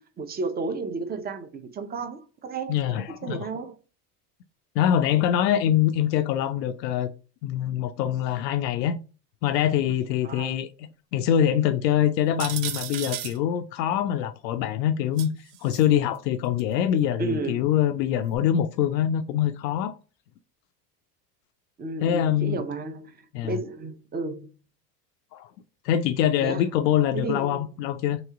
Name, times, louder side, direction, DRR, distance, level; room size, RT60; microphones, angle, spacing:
voice 1, 0.0-3.8 10.2-10.6 17.2-17.7 21.8-24.5 26.4-26.7 27.1-27.7, right 3 dB, 20° right, 0.6 m, -33 dB
voice 2, 2.7-3.5 4.8-7.1 7.4-9.0 9.4-10.7 11.1-15.3 15.6-19.9 22.0-22.6 23.3-23.5 25.3-25.5 25.8-28.2, left 10 dB, 85° left, 0.6 m, -24 dB
sound 1, 12.4-13.4 15.2-15.8 16.6-16.7 18.3-18.4, right 11 dB, 70° right, 0.7 m, -34 dB
3.1 x 2.8 x 3.6 m
hypercardioid pair, 95°, 48 cm